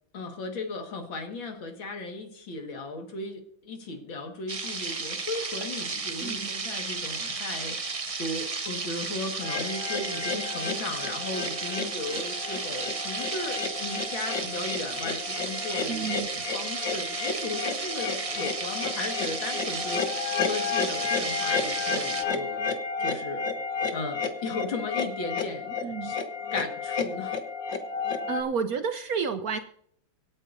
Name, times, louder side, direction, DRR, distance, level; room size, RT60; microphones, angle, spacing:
voice 1, 0.1-22.6 23.0-23.5 23.9-26.2 26.5-27.4, left 2 dB, 85° left, 4 dB, 2.6 m, -36 dB
sound 1, 4.5-22.2, right 4 dB, 50° right, 0.4 m, -34 dB
sound 2, 9.4-28.4, left 5 dB, 70° left, 1.9 m, -32 dB
voice 2, 15.9-16.4 25.8-26.1 28.3-29.6, right 6 dB, 65° right, 9 dB, 0.9 m, -30 dB
25.5 x 8.9 x 2.7 m, 0.67 s
omnidirectional pair, 2.1 m